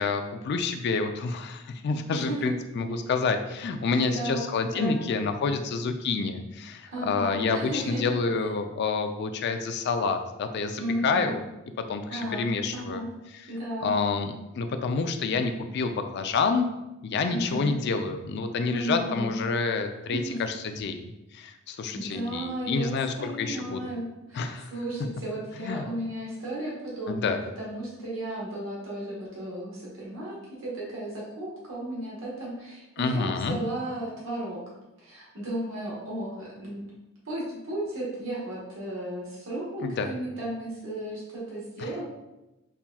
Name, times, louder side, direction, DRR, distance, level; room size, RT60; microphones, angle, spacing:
voice 1, 0.0-11.4 11.8-13.0 13.8-16.7 17.0-23.9 24.3-24.7 25.6-25.8 27.1-27.4 33.0-33.6 39.8-40.1 41.8-41.9, left 4 dB, 55° left, 7 dB, 0.3 m, -28 dB
voice 2, 2.1-2.5 4.0-4.4 4.7-5.0 6.9-8.0 10.8-11.3 12.1-13.1 13.5-13.9 17.3-17.7 18.7-19.4 20.1-20.4 21.9-34.6 35.0-36.8 37.2-42.0, right 1 dB, 90° right, -6 dB, 1.1 m, -34 dB
5.5 x 2.3 x 2.2 m, 0.96 s
head